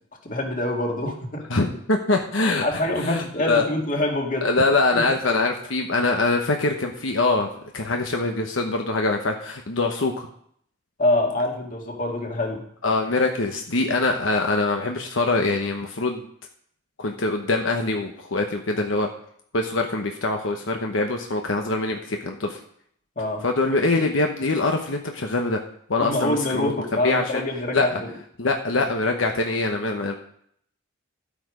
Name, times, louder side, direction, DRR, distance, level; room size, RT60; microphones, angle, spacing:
voice 1, 0.2-1.4 2.6-4.5 4.9-5.1 11.0-12.7 23.2-23.5 26.0-28.1, left 1 dB, 45° left, 1 dB, 2.1 m, -25 dB
voice 2, 1.5-2.6 3.0-3.7 4.4-10.3 12.8-16.2 17.0-19.1 19.5-22.6 23.4-25.6 25.9-26.7 27.0-27.2 27.7-27.9 28.4-30.2, left 3 dB, 80° left, 3 dB, 1.1 m, -23 dB
12.0 x 8.7 x 5.1 m, 0.65 s
head